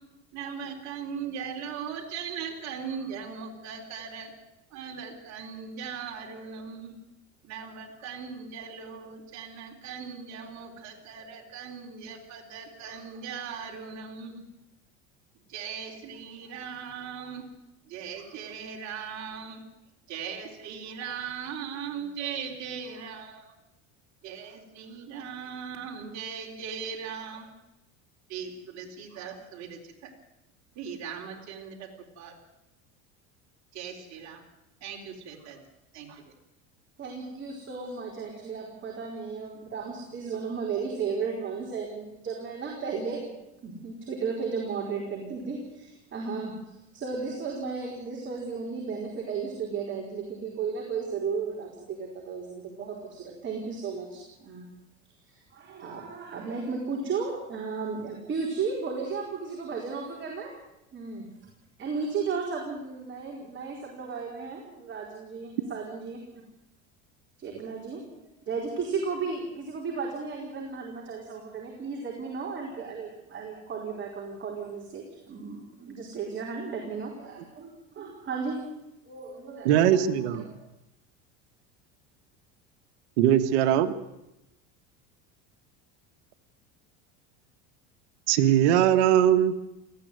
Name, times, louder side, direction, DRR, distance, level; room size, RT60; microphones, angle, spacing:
voice 1, 0.3-4.3 4.7-6.9 7.4-14.4 15.5-17.4 17.9-19.6 20.1-23.5 24.2-27.5 28.3-30.1 30.8-31.9 32.2-32.4 33.7-34.4 34.8-35.6 35.9-36.3, right 7 dB, 55° right, 4.1 m, -39 dB
voice 2, 37.0-43.3 43.6-54.7 55.3-60.5 60.9-61.2 61.8-66.4 67.4-78.6 79.1-80.0 80.3-80.5, right 5 dB, 35° right, 4.7 m, -34 dB
voice 3, 79.6-80.5 83.2-83.9 88.3-89.5, right 10 dB, 80° right, 1.7 m, -21 dB
19.0 x 15.0 x 9.5 m
supercardioid pair, 115°, 34 cm